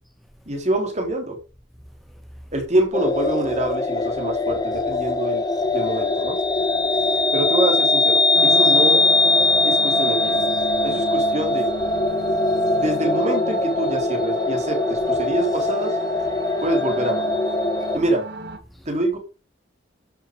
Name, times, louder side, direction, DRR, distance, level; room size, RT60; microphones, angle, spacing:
voice 1, 0.5-1.4 2.5-5.4 5.7-6.4 7.3-9.0 9.6-10.4 10.8-11.7 12.7-15.9 16.6-17.3 17.9-18.2 18.9-19.2, right 1 dB, 35° right, 3.7 m, -25 dB
sound 1, 2.9-18.0, left 2 dB, 20° left, 1.5 m, -21 dB
voice 2, 6.5-7.3 10.8-11.0 12.0-12.8 18.7-18.9, equal, ahead, 2.1 m, -49 dB
sound 2, 8.3-18.6, right 1 dB, 60° right, 2.0 m, -35 dB
12.5 x 6.9 x 5.3 m
head